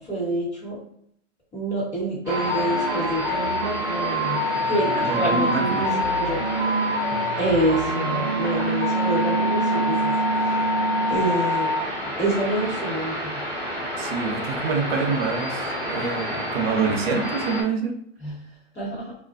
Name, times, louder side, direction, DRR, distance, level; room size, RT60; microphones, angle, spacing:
voice 1, 0.1-0.8 1.5-4.4 4.6-5.9 6.2-6.4 7.4-10.1 10.4-10.6 11.1-11.7 12.2-13.4 18.2-18.3 18.7-19.0, right 1 dB, 10° left, -10 dB, 1.2 m, -27 dB
sound 1, 2.3-17.6, equal, 10° right, 0.9 m, -25 dB
voice 2, 4.9-5.9 14.0-17.9, right 4 dB, 60° right, 3 dB, 0.7 m, -26 dB
2.4 x 2.1 x 2.5 m, 0.70 s
hypercardioid pair, 160°, 35 cm